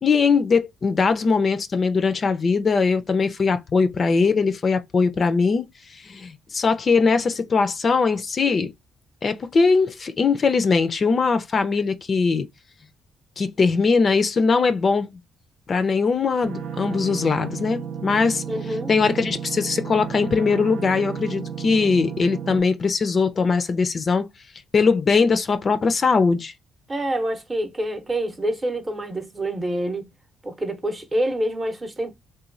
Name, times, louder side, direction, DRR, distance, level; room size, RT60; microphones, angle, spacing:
voice 1, 0.0-5.6 5.9-8.7 9.2-12.5 13.4-15.2 15.7-18.4 18.9-24.3 24.7-26.5, left 4 dB, 40° left, 0.4 m, -21 dB
sound 1, 16.4-22.6, right 7 dB, 90° right, 0.4 m, -33 dB
voice 2, 18.5-18.9 26.9-30.1 30.4-32.1, right 1 dB, 25° right, 0.6 m, -26 dB
3.0 x 2.2 x 2.5 m
cardioid pair, 90°, 0 cm